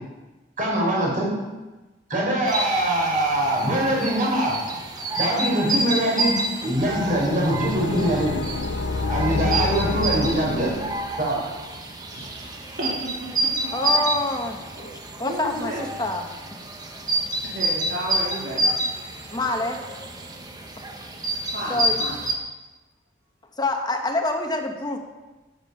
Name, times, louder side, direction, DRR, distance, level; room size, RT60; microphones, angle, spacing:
voice 1, 0.6-1.3 2.1-4.7 5.2-8.3 9.1-10.7 11.2-11.5, right 1 dB, 45° right, -2 dB, 4.8 m, -23 dB
sound 1, 2.5-22.4, right 1 dB, 20° right, 1.2 m, -29 dB
sound 2, 6.8-11.4, left 3 dB, 80° left, 0.7 m, -28 dB
voice 2, 12.1-14.4 14.8-14.9 15.2-15.8 17.4-18.8 21.5-22.2, right 1 dB, 65° right, -5 dB, 2.6 m, -33 dB
voice 3, 13.7-14.6 15.2-15.7 16.0-16.3 19.3-19.8 21.7-22.0 23.6-25.0, left 2 dB, 25° left, 4 dB, 1.1 m, -26 dB
13.0 x 9.6 x 5.6 m, 1.2 s
head